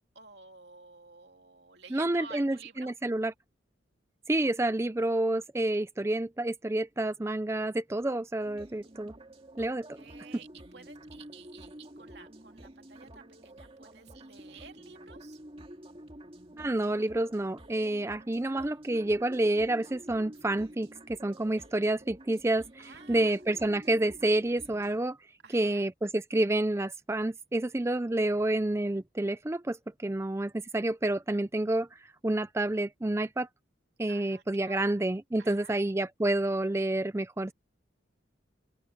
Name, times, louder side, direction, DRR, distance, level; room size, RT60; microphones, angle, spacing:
voice 1, 0.0-2.9 9.6-15.4 22.8-23.4 25.4-25.9 34.1-35.0 35.4-35.8, right 5 dB, 60° right, 2.9 m, -52 dB
voice 2, 1.9-3.3 4.3-9.1 9.6-10.0 16.6-25.2 25.5-33.5 34.0-37.5, right 1 dB, 15° right, 0.4 m, -29 dB
sound 1, 8.4-25.0, right 1 dB, 30° right, 2.3 m, -50 dB
open air
head